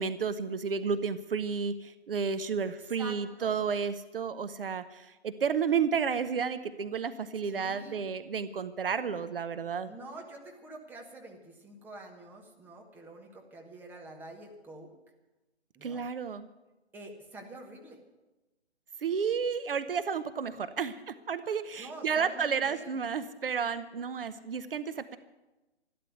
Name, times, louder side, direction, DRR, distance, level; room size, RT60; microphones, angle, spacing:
voice 1, 0.0-9.9 15.8-16.5 19.0-25.2, right 6 dB, 55° right, 12 dB, 0.8 m, -32 dB
voice 2, 2.6-3.6 7.4-8.0 9.8-14.9 15.7-16.0 16.9-18.0 21.8-23.0, right 2 dB, 5° right, 1 dB, 1.3 m, -47 dB
13.0 x 12.0 x 8.0 m, 1.1 s
figure-of-eight pair, 140°, 33 cm